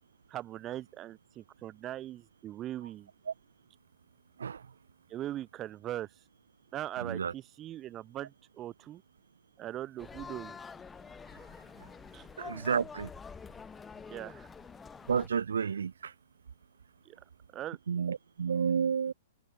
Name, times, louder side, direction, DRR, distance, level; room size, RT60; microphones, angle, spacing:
voice 1, 0.3-3.1 5.1-6.1 6.7-9.0 9.6-10.6 12.1-12.3 14.1-14.5 17.0-17.2 17.5-17.8, right 13 dB, 25° right, 1.6 m, -40 dB
voice 2, 4.4-4.7 7.0-7.3 11.8-11.9 12.4-13.1 15.1-16.1 17.9-19.1, right 6 dB, 70° right, 1.7 m, -31 dB
sound 1, 10.0-15.3, left 5 dB, 15° left, 3.0 m, -47 dB
figure-of-eight pair, 110°, 0 cm